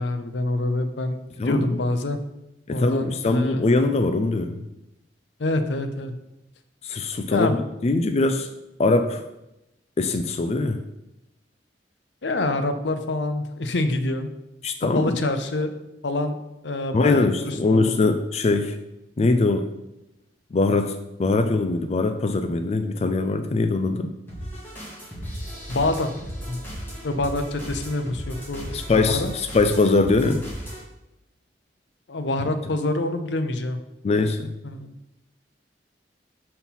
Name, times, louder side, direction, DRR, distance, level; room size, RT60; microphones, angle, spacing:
voice 1, 0.0-2.2 2.7-3.6 5.4-6.1 7.3-7.6 12.2-14.3 14.9-15.7 16.0-16.4 16.6-17.9 25.7-26.1 26.5-26.6 27.0-29.3 32.1-33.8 34.6-34.9, left 2 dB, 75° left, 8 dB, 0.7 m, -26 dB
voice 2, 1.4-1.8 2.7-4.6 6.8-7.6 7.8-8.5 8.8-9.2 10.0-10.8 14.6-15.2 16.9-18.8 19.2-19.7 20.5-20.9 21.2-24.1 28.7-30.5 34.0-34.5, left 3 dB, 35° left, 7 dB, 0.4 m, -22 dB
sound 1, 24.3-30.8, equal, 10° left, 2.1 m, -36 dB
5.6 x 4.4 x 5.6 m, 0.90 s
head